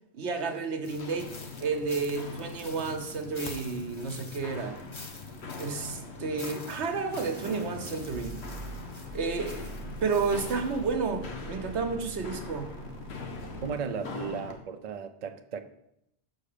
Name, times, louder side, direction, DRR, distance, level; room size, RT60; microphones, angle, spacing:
voice 1, 0.1-1.3 1.6-4.8 5.6-8.4 9.1-9.7 10.0-12.7, right 4 dB, 90° right, 1.2 m, -31 dB
Walk footsteps, 0.8-14.6, left 4 dB, 75° left, 1.2 m, -42 dB
sound 1, 0.8-10.9, left 3 dB, 30° left, 0.7 m, -48 dB
sound 2, 7.2-13.9, right 3 dB, 65° right, 1.0 m, -44 dB
voice 2, 13.6-15.6, right 6 dB, 45° right, 0.6 m, -35 dB
6.5 x 4.8 x 6.6 m
omnidirectional pair, 1.1 m